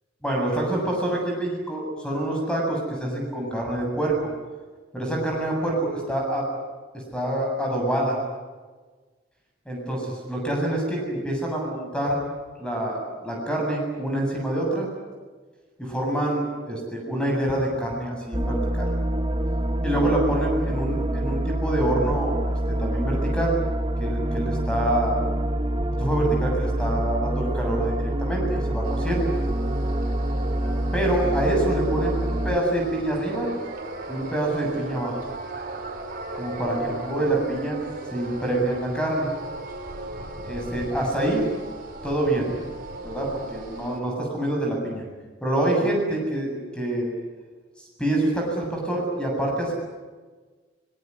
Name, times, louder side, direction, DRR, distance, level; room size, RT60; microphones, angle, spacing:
voice 1, 0.2-4.2 4.9-6.5 7.1-8.2 9.7-12.2 12.6-14.9 15.8-18.9 19.8-23.6 24.0-25.2 26.0-29.3 30.9-33.5 34.1-35.2 36.4-37.8 38.1-39.3 40.4-41.4 42.0-42.6 43.0-45.0 45.4-47.1 48.0-49.7, right 1 dB, 5° left, 0 dB, 7.5 m, -26 dB
sound 1, 18.3-32.6, right 1 dB, 25° right, 1.2 m, -26 dB
sound 2, 28.8-44.0, right 2 dB, 50° right, 4.6 m, -37 dB
24.5 x 21.0 x 9.8 m, 1.4 s
head